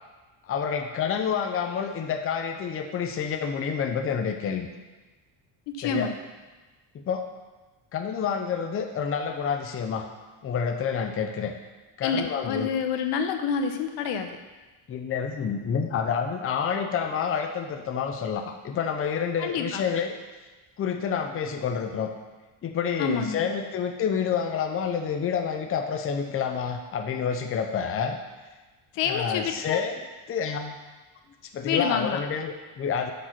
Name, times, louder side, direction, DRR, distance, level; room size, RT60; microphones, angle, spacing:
voice 1, 0.5-4.7 5.8-6.1 6.9-7.2 7.9-10.1 10.4-11.5 12.0-12.7 14.9-20.2 20.8-22.1 22.6-28.2 29.0-30.0 30.3-30.8 31.5-33.1, left 7 dB, 30° left, 5 dB, 0.7 m, -28 dB
voice 2, 5.7-6.1 12.0-14.3 19.4-19.8 23.0-23.5 28.9-29.8 31.6-32.2, left 6 dB, 80° left, 6 dB, 1.0 m, -28 dB
8.0 x 5.3 x 6.0 m, 1.2 s
cardioid pair, 140°, 42 cm